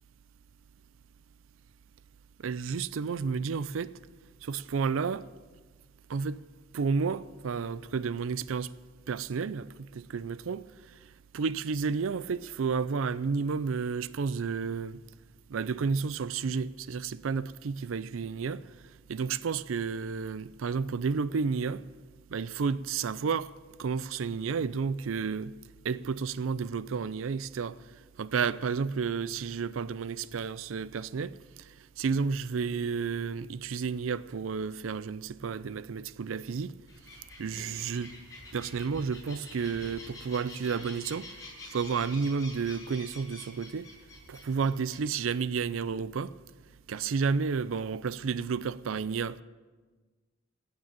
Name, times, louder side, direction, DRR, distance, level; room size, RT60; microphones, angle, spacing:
voice 1, 2.4-3.9 4.4-5.2 6.1-6.4 6.7-8.7 9.1-10.6 11.3-15.0 15.5-18.6 19.1-21.8 22.3-23.5 23.8-25.5 25.8-27.8 28.2-31.4 32.0-36.7 37.4-38.1 38.5-41.3 41.7-43.9 44.3-46.3 46.9-49.4, right 5 dB, 85° right, 0.5 m, -31 dB
sound 1, 36.9-45.0, left 2 dB, 20° left, 6.0 m, -48 dB
16.5 x 8.9 x 7.5 m
head